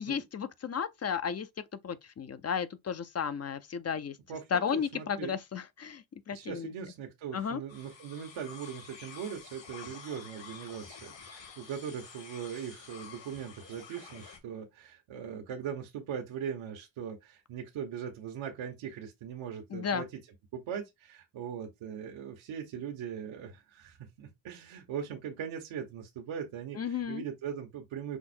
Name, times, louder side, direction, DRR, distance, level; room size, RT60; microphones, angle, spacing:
voice 1, 0.0-1.5 1.8-4.2 4.5-6.7 7.3-7.6 19.7-20.0 26.8-27.2, left 7 dB, 35° left, 0.6 m, -33 dB
voice 2, 4.3-5.4 6.3-20.0 20.5-28.2, right 8 dB, 75° right, 1.3 m, -40 dB
sound 1, 7.7-14.4, left 6 dB, 65° left, 2.1 m, -49 dB
5.8 x 2.1 x 4.3 m
cardioid pair, 80°, 47 cm